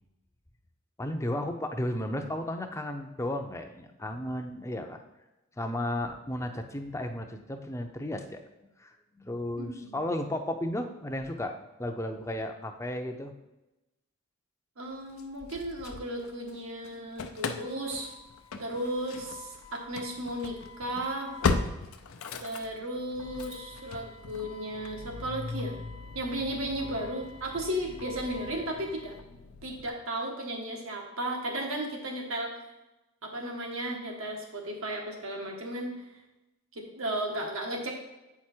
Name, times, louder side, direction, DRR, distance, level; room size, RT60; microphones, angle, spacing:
voice 1, 1.0-5.0 5.6-8.4 8.8-11.5 11.8-13.3, left 1 dB, 15° left, 5 dB, 0.5 m, -34 dB
voice 2, 9.6-9.9 14.8-18.1 18.6-21.3 22.4-25.7 26.1-29.1 29.6-32.6 33.2-36.1 36.7-38.0, right 1 dB, 80° right, 1 dB, 1.4 m, -35 dB
Engine starting / Slam, 15.2-16.6 16.8-29.9, left 4 dB, 85° left, 0.6 m, -38 dB
8.2 x 4.8 x 4.4 m, 1.0 s
head